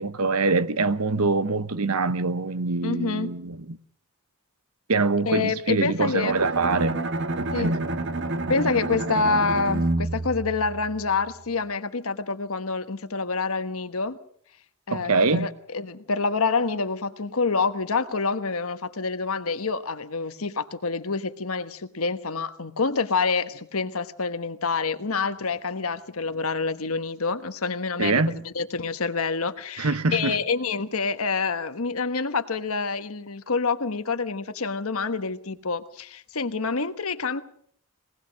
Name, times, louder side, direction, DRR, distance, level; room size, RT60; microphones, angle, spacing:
voice 1, 0.0-3.8 4.9-7.0 7.4-7.9 14.9-15.5 28.0-28.4 29.8-30.4, right 3 dB, 80° right, 1.0 m, -24 dB
voice 2, 2.8-3.3 5.2-6.3 7.5-7.7 8.5-14.2 14.9-37.4, left 4 dB, 75° left, 1.2 m, -27 dB
Bowed string instrument, 6.3-11.3, right 2 dB, 55° right, 1.1 m, -29 dB
21.5 x 19.0 x 6.4 m
head